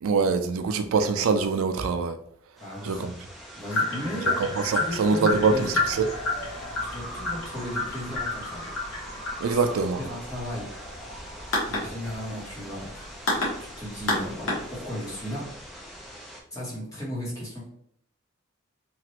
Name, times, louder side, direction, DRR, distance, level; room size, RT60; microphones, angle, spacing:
voice 1, 0.0-2.2 2.8-3.1 4.4-6.1 9.4-10.0, right 4 dB, 80° right, 0.4 m, -24 dB
voice 2, 2.6-3.1 3.5-4.4 4.7-5.7 6.9-8.7 9.5-9.7 10.0-10.7 11.7-15.4 16.5-17.7, equal, 15° left, 1.1 m, -35 dB
sound 1, 2.6-16.4, equal, ahead, 0.4 m, -45 dB
sound 2, 3.7-15.2, left 2 dB, 70° left, 1.1 m, -31 dB
fire truck short siren and horn blasts, 5.3-16.1, equal, 40° left, 0.9 m, -42 dB
3.1 x 2.4 x 2.8 m
head